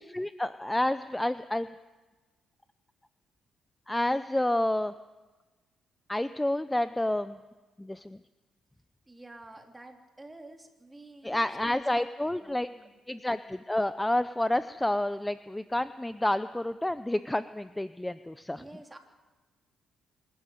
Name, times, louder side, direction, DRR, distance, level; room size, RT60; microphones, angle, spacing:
voice 1, 0.0-1.8 3.9-4.9 6.1-7.4 7.8-8.2 11.2-12.7 13.1-18.6, left 1 dB, 10° left, 13 dB, 0.6 m, -29 dB
voice 2, 9.1-12.9 18.5-19.0, right 2 dB, 15° right, 4 dB, 3.2 m, -49 dB
26.0 x 13.0 x 9.3 m, 1.2 s
cardioid pair, 90°, 0 cm